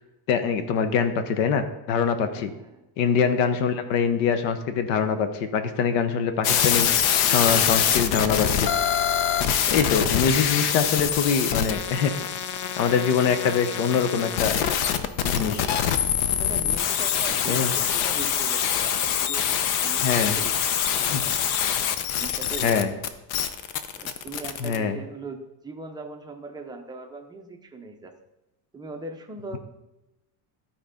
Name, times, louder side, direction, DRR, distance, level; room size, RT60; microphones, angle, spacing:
voice 1, 0.3-2.5 3.0-8.7 9.7-12.1 12.8-14.6 15.2-15.7 17.5-17.7 20.0-20.4 21.1-21.2 22.6-22.9 24.6-25.0, left 6 dB, 85° left, 9 dB, 1.1 m, -24 dB
voice 2, 2.3-2.8 16.3-20.1 20.4-21.5 22.1-23.0 24.0-28.1 28.7-29.6, right 3 dB, 10° right, 3 dB, 0.4 m, -40 dB
sound 1, 6.4-24.8, left 9 dB, 70° left, 0.8 m, -24 dB
13.0 x 4.4 x 5.0 m, 0.95 s
cardioid pair, 170°, 49 cm